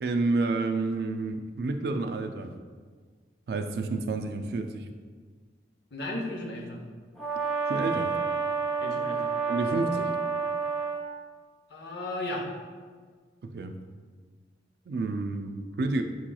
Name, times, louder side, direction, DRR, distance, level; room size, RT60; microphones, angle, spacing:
voice 1, 0.0-2.5 3.5-4.9 7.7-8.1 9.5-10.2 13.4-13.8 14.9-16.0, right 3 dB, 65° right, 6 dB, 0.3 m, -29 dB
voice 2, 5.9-6.8 8.8-9.3 11.7-12.5, left 1 dB, 65° left, 0 dB, 0.7 m, -35 dB
Brass instrument, 7.2-11.1, right 5 dB, ahead, 0.6 m, -29 dB
7.0 x 2.9 x 2.3 m, 1.6 s
head